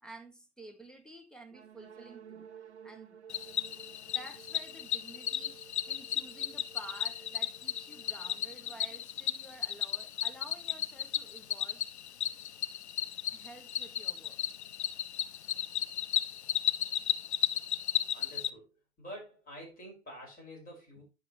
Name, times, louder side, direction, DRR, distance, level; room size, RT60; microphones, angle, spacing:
voice 1, 0.0-2.5 2.8-3.2 4.1-11.9 13.3-14.4, right 2 dB, ahead, 1.1 m, -51 dB
sound 1, 1.5-9.2, right 7 dB, 85° right, 0.8 m, -54 dB
Cricket, 3.3-18.5, left 10 dB, 80° left, 0.5 m, -34 dB
voice 2, 18.1-18.7 19.0-21.0, equal, 25° left, 5.2 m, -48 dB
9.9 x 6.6 x 3.0 m
figure-of-eight pair, 90°, 33 cm